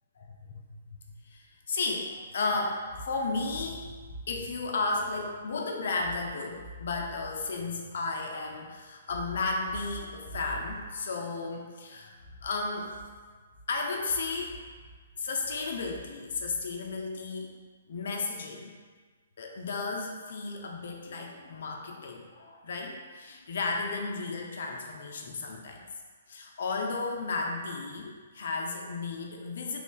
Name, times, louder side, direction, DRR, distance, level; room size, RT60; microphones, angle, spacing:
voice 1, 0.2-1.0 1.2-13.0 13.7-14.6 15.2-17.5 17.9-18.7 19.4-25.9 26.3-29.8, left 3 dB, 65° left, 1 dB, 0.5 m, -34 dB
3.1 x 2.5 x 3.8 m, 1.5 s
hypercardioid pair, 140°, 0 cm